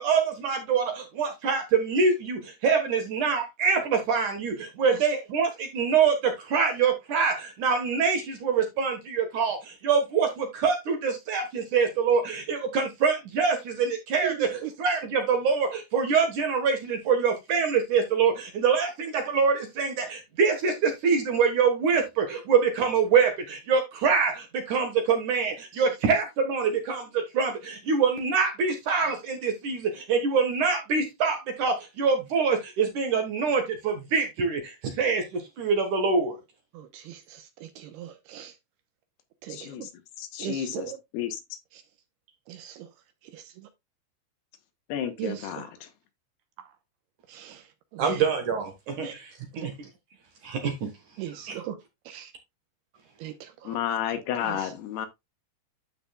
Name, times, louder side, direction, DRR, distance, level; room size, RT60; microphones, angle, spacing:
voice 1, 0.0-36.4 48.0-49.9 50.4-50.9 51.3-51.6, right 5 dB, 60° right, 2.4 m, -25 dB
voice 2, 14.2-14.7 36.7-38.5 39.4-39.9 40.4-41.0 42.5-42.7 45.2-45.7 47.3-47.6 47.9-48.2 49.0-49.1 51.2-51.8 52.1-52.3 53.2-53.8 54.4-54.7, right 11 dB, 75° right, 2.7 m, -38 dB
voice 3, 39.5-39.9 40.2-41.4 44.9-45.9 53.6-55.1, left 9 dB, 75° left, 3.0 m, -32 dB
12.5 x 5.1 x 2.3 m
omnidirectional pair, 5.0 m